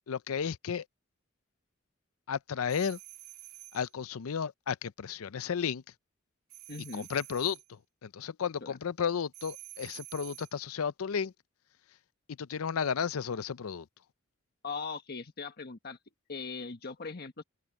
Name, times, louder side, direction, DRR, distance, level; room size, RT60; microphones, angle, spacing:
voice 1, 0.1-0.8 2.3-3.0 3.7-5.8 6.9-11.3 12.4-13.9, left 7 dB, 80° left, 0.5 m, -33 dB
sound 1, 2.7-3.9 6.5-7.7 9.3-10.6, right 15 dB, 90° right, 1.9 m, -49 dB
voice 2, 6.7-7.1 8.6-8.8 14.6-16.0 16.3-17.4, left 4 dB, 50° left, 1.4 m, -40 dB
head